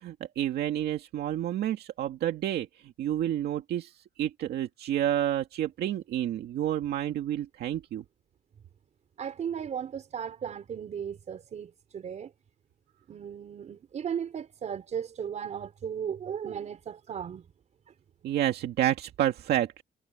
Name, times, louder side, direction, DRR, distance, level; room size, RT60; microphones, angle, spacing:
voice 1, 0.0-2.7 3.0-3.9 4.2-8.0 18.2-19.8, right 11 dB, 75° right, 2.1 m, -29 dB
voice 2, 9.2-12.3 13.1-17.5, right 8 dB, 45° right, 4.8 m, -36 dB
cardioid pair, 160°, 17 cm